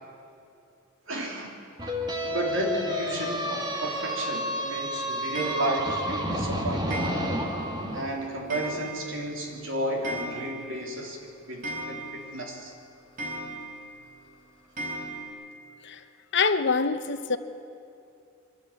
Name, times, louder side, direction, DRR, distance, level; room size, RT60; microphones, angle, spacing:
voice 1, 1.1-1.6 2.3-7.2 7.9-11.2 11.5-12.7, right 1 dB, 75° right, 1 dB, 3.4 m, -32 dB
sound 1, 1.8-8.0, equal, 20° right, 2.1 m, -30 dB
Clock, 5.3-6.1 6.9-7.6 7.9-8.0 8.5-9.3 9.5-9.6 9.9-10.8 11.1-11.2 11.6-12.4 13.2-13.9 14.8-15.3, right 1 dB, 45° right, 4.1 m, -36 dB
voice 2, 16.3-17.4, left 5 dB, 60° left, 10 dB, 0.9 m, -25 dB
24.0 x 13.0 x 8.7 m, 2.6 s
head